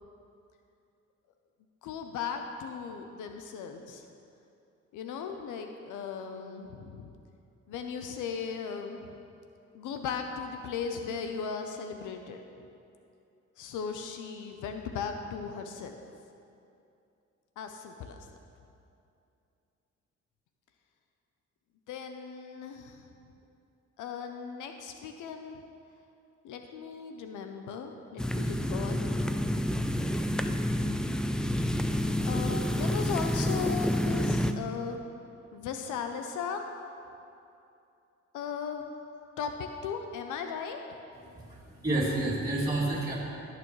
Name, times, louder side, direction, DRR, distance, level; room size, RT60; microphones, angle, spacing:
voice 1, 1.8-4.0 4.9-7.1 7.7-9.2 9.7-12.4 13.6-16.0 17.6-18.3 21.9-23.1 24.0-25.6 26.4-29.0 32.2-35.0 35.5-36.6 38.3-38.9 39.4-40.8, left 6 dB, 85° left, 5 dB, 0.7 m, -37 dB
sound 1, 28.2-34.5, equal, 5° left, 0.3 m, -29 dB
voice 2, 41.2-43.2, right 2 dB, 15° right, -8 dB, 2.5 m, -30 dB
16.5 x 6.8 x 3.2 m, 2.6 s
cardioid pair, 90°, 30 cm